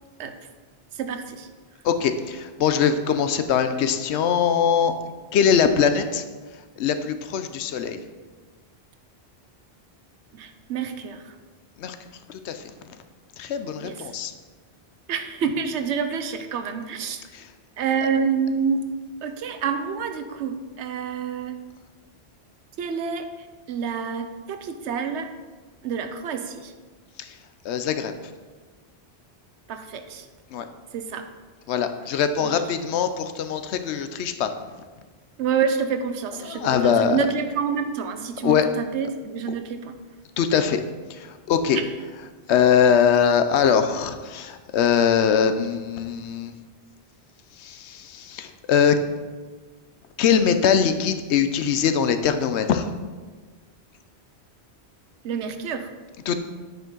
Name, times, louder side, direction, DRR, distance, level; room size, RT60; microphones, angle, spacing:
voice 1, 1.0-1.5 10.3-11.3 13.8-14.0 15.1-17.2 17.8-18.9 19.2-21.6 22.8-23.3 23.7-25.3 25.8-26.7 29.7-30.3 30.9-31.2 32.4-32.5 35.4-39.9 41.7-41.9 55.2-55.9, right 6 dB, 85° right, 8 dB, 1.0 m, -28 dB
voice 2, 1.8-4.9 5.3-6.2 6.8-8.0 11.8-12.0 12.3-12.6 13.4-14.3 17.3-17.4 27.2-27.3 27.6-28.1 30.5-30.7 31.7-34.5 36.4-37.2 38.4-38.7 40.4-40.8 41.1-41.8 42.5-46.5 47.6-48.9 50.2-52.9 56.3-56.4, left 7 dB, 85° left, 9 dB, 0.9 m, -22 dB
9.2 x 5.0 x 3.8 m, 1.3 s
omnidirectional pair, 1.1 m